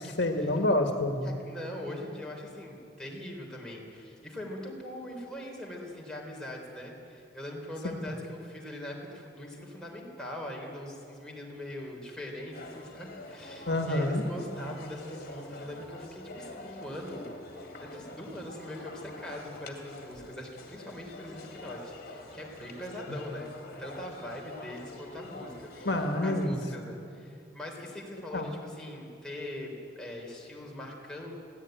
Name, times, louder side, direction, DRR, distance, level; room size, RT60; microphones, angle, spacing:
voice 1, 0.0-1.2 7.8-8.0 13.7-14.2 25.8-26.5 28.3-28.5, left 1 dB, 70° left, 5 dB, 1.6 m, -28 dB
voice 2, 1.2-17.3 17.8-23.5 23.8-25.9 26.2-31.3, left 1 dB, 5° left, -2 dB, 3.6 m, -42 dB
sound 1, 12.5-26.5, left 1 dB, 50° left, 2.3 m, -46 dB
21.0 x 16.0 x 9.1 m, 2.5 s
head